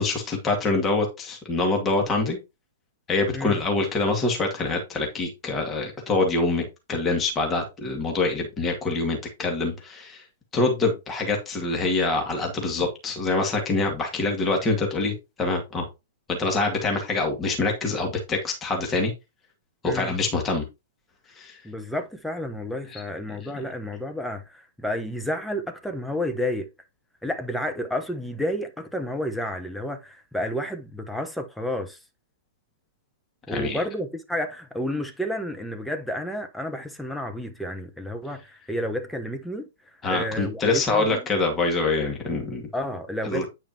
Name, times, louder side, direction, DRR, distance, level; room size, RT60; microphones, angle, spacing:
voice 1, 0.0-2.4 3.1-6.6 6.9-10.2 10.5-15.9 16.3-19.1 19.8-20.6 21.4-21.6 22.9-23.0 33.5-33.8 40.0-42.7 43.2-43.4, left 3 dB, 20° left, 2.2 m, -25 dB
voice 2, 19.8-20.2 21.6-26.7 27.2-32.0 33.5-39.7 40.1-41.2 42.7-43.5, left 1 dB, 5° left, 1.0 m, -31 dB
8.9 x 4.9 x 2.9 m
hypercardioid pair, 115°, 0 cm